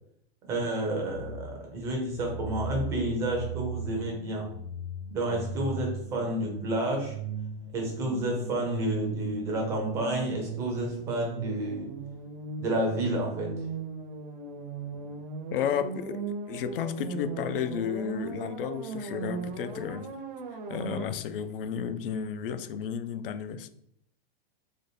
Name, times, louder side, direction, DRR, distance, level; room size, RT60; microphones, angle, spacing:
voice 1, 0.5-4.5 5.1-7.2 7.7-11.9 12.6-13.7, right 1 dB, 10° right, 0 dB, 0.4 m, -30 dB
sound 1, 1.1-21.1, right 4 dB, 60° right, 0.6 m, -38 dB
voice 2, 15.5-16.2 16.5-20.1 20.7-23.7, left 8 dB, 70° left, 11 dB, 0.5 m, -32 dB
4.0 x 2.2 x 3.2 m, 0.72 s
supercardioid pair, 175°, 29 cm